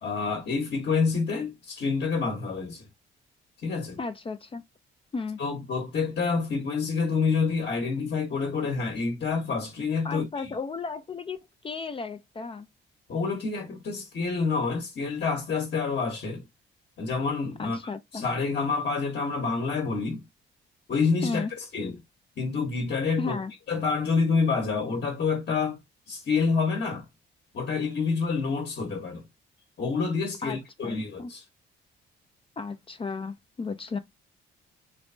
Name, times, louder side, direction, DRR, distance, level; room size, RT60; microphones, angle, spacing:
voice 1, 0.0-2.9 3.6-4.0 5.4-10.5 13.1-16.4 17.0-17.8 18.1-20.2 20.9-21.5 21.7-22.0 22.4-23.4 23.7-25.8 26.1-27.0 27.5-29.2 29.8-31.4, left 4 dB, 55° left, 1.2 m, -27 dB
voice 2, 4.0-4.6 5.1-5.4 10.0-11.4 11.6-12.7 17.6-18.3 21.2-21.5 23.2-23.5 30.4-31.3 32.6-34.0, left 4 dB, 25° left, 0.5 m, -34 dB
3.2 x 3.1 x 2.6 m
cardioid pair, 90°, 20 cm